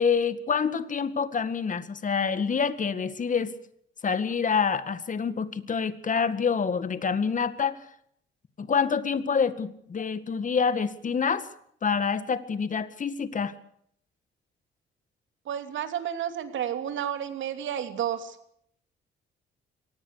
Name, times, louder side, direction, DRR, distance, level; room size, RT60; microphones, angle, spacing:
voice 1, 0.0-3.6 4.0-7.8 8.6-11.5 11.8-13.5, left 6 dB, 40° left, 13 dB, 2.0 m, -27 dB
voice 2, 15.5-18.4, right 9 dB, 75° right, 8 dB, 3.1 m, -31 dB
23.5 x 19.0 x 6.7 m, 0.68 s
cardioid pair, 90°, 20 cm